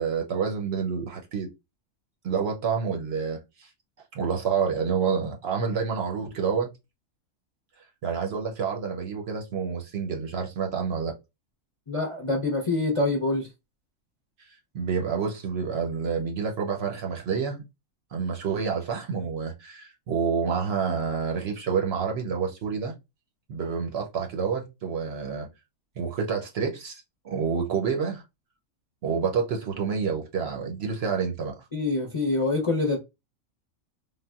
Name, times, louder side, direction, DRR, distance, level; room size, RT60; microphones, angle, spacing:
voice 1, 0.0-1.5 2.2-3.7 4.1-6.7 8.0-11.1 14.5-17.6 18.1-22.9 23.5-25.5 26.0-28.2 29.0-31.6, right 6 dB, 60° right, 0.8 m, -28 dB
voice 2, 11.9-13.5 31.7-33.0, left 2 dB, 35° left, 0.5 m, -25 dB
3.5 x 2.2 x 2.3 m
omnidirectional pair, 1.4 m